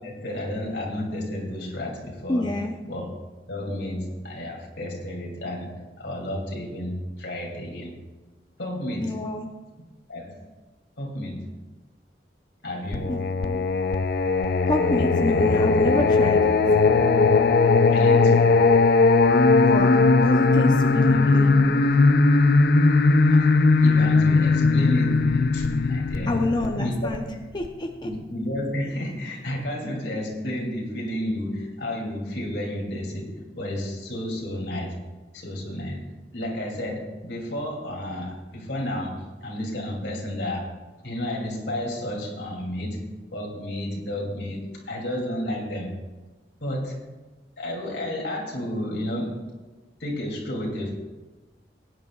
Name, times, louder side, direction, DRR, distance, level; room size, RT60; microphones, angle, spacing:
voice 1, 0.0-2.6 2.8-3.1 3.4-8.0 8.6-9.3 10.1-10.5 11.0-11.6 12.6-13.2 17.9-18.7 21.1-21.2 23.3-23.5 23.8-26.3 26.8-27.2 28.0-35.0 35.3-36.1 36.3-40.7 41.0-45.9 46.6-47.0 47.6-49.4 50.0-50.9, left 1 dB, 80° left, -1 dB, 2.9 m, -31 dB
voice 2, 2.3-2.8 9.0-9.5 13.1-13.6 14.7-16.6 19.6-21.8 26.3-27.2 27.5-28.1, left 1 dB, 25° left, 2 dB, 0.7 m, -28 dB
Singing, 12.9-27.7, left 3 dB, 60° left, 0.5 m, -19 dB
20.0 x 9.5 x 2.4 m, 1.2 s
head